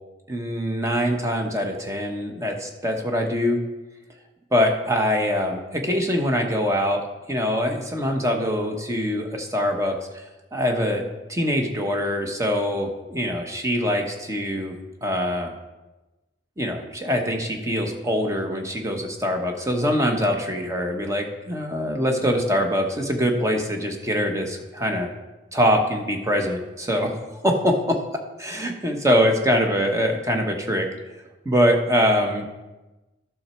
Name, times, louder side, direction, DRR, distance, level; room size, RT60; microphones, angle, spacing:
voice 1, 0.3-3.6 4.5-7.0 7.3-10.2 10.5-11.0 11.3-15.5 16.6-25.1 25.5-27.1 27.4-28.0 28.4-30.9 31.4-32.5, equal, 15° right, 3 dB, 1.1 m, -23 dB
11.5 x 6.1 x 4.4 m, 1.1 s
head